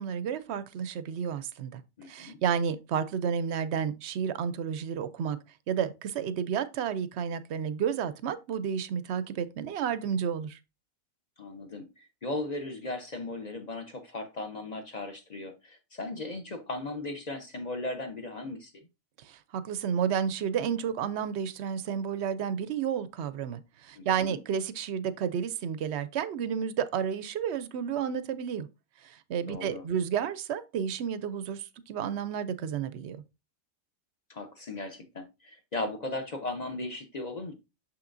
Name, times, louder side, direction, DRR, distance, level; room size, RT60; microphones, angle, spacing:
voice 1, 0.0-5.4 5.7-10.6 19.2-28.7 29.0-33.2, right 8 dB, 65° right, 0.7 m, -31 dB
voice 2, 2.0-2.4 11.4-18.8 23.9-24.4 29.5-29.8 34.3-37.5, left 2 dB, 40° left, 0.6 m, -37 dB
6.5 x 5.8 x 2.5 m
omnidirectional pair, 1.5 m